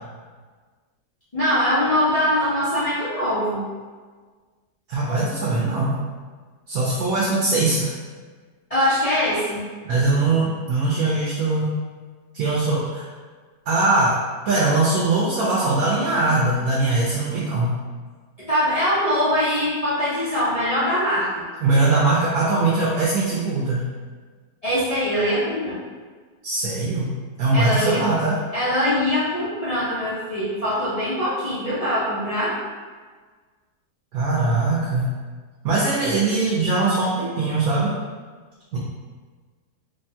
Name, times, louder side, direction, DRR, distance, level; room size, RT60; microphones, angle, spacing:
voice 1, 1.3-3.7 8.7-9.6 18.4-21.4 24.6-25.8 27.5-28.1 28.5-32.5, equal, 70° left, -12 dB, 0.3 m, -22 dB
voice 2, 4.9-5.9 6.7-7.9 9.8-11.7 12.3-13.1 13.7-14.2 14.5-17.7 21.6-23.8 26.4-27.1 27.4-28.4 34.1-35.1 35.6-38.0 38.7-38.8, right 3 dB, 70° right, -7 dB, 0.9 m, -21 dB
3.4 x 2.2 x 2.7 m, 1.5 s
omnidirectional pair, 1.8 m